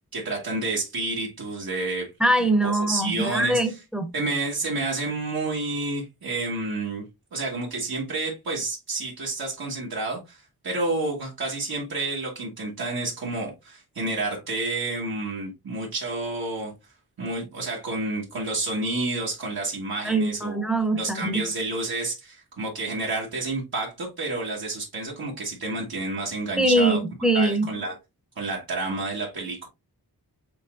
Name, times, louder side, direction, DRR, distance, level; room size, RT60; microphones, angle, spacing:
voice 1, 0.1-2.1 2.4-3.8 4.1-7.0 7.3-16.7 17.2-20.7 21.0-27.0 27.3-28.0 28.4-29.7, right 2 dB, 70° right, 1.5 m, -30 dB
voice 2, 2.2-4.1 20.0-21.4 26.6-27.7, right 1 dB, ahead, 0.9 m, -23 dB
6.9 x 3.0 x 2.5 m
wide cardioid pair, 140°, 38 cm